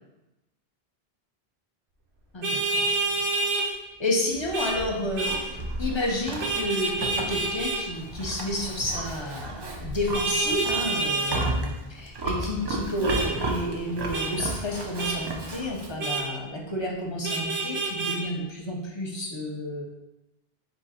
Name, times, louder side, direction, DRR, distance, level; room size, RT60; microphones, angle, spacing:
voice 1, 2.3-2.9 3.6-3.7 4.0-5.5 5.8-19.8, left 1 dB, 30° left, -1 dB, 0.6 m, -31 dB
Vehicle horn car horn honking, 2.4-3.7 4.5-4.8 5.2-5.4 6.4-7.8 10.1-11.4 13.1-13.3 14.1-14.3 15.0-15.2 16.0-16.2 17.2-18.2, right 3 dB, 90° right, 1.0 m, -27 dB
Livestock farm animals working animals, 4.3-16.0, right 2 dB, 40° right, 0.3 m, -34 dB
3.7 x 2.7 x 4.2 m, 0.98 s
omnidirectional pair, 1.0 m